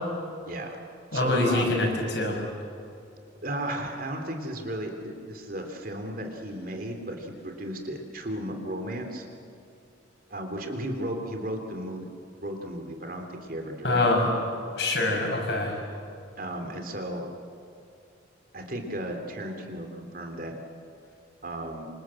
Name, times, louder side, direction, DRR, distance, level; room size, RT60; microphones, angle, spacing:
voice 1, 0.5-0.8 1.1-1.7 3.4-9.3 10.3-12.0 12.4-14.3 16.4-17.3 18.5-20.6 21.4-21.9, right 1 dB, 45° right, 4 dB, 3.3 m, -35 dB
voice 2, 1.1-2.4 13.8-14.3 14.8-15.7, left 2 dB, 60° left, 1 dB, 6.5 m, -24 dB
27.0 x 26.5 x 7.8 m, 2.7 s
head